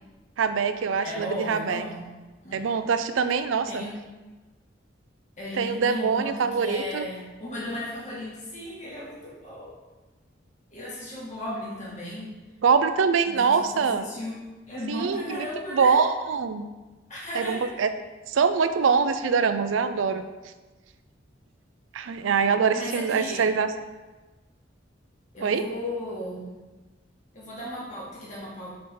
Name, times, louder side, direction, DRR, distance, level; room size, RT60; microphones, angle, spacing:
voice 1, 0.4-1.8 2.5-3.8 5.5-7.1 12.6-14.0 14.9-15.5 15.7-16.7 17.3-17.9 18.3-20.3 21.9-23.7 25.4-25.6, right 5 dB, 90° right, 10 dB, 0.4 m, -24 dB
voice 2, 1.0-2.0 2.4-2.6 3.7-3.9 5.4-9.8 10.7-12.4 13.3-14.4 14.7-16.0 17.1-17.7 22.7-23.5 25.3-26.5 27.3-28.7, left 1 dB, 40° left, -7 dB, 2.1 m, -35 dB
6.6 x 4.3 x 3.8 m, 1.2 s
head